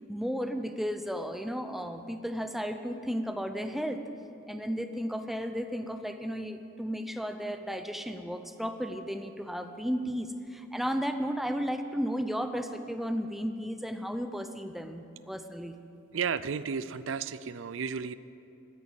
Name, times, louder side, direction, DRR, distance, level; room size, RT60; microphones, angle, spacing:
voice 1, 0.1-4.0 4.5-15.8, equal, ahead, 7 dB, 0.6 m, -34 dB
voice 2, 16.1-18.1, right 6 dB, 70° right, 16 dB, 0.5 m, -33 dB
14.0 x 9.6 x 8.8 m, 2.8 s
head